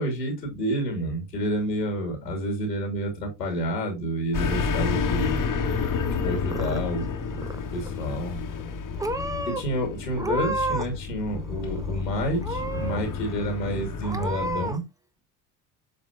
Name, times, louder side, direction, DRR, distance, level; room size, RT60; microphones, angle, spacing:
voice 1, 0.0-5.4 6.2-7.5 7.7-8.4 9.5-14.8, equal, 90° left, 2.3 m, -29 dB
sound 1, 4.3-14.7, left 5 dB, 40° left, 1.4 m, -30 dB
Purr / Meow, 6.2-7.1 7.3-7.9 8.6-8.7 9.0-9.6 10.1-11.0 11.3-12.0 12.4-13.0 13.4-13.5 14.0-14.8, right 2 dB, 5° right, 0.9 m, -31 dB
7.5 x 5.2 x 2.7 m
hypercardioid pair, 55°, 48 cm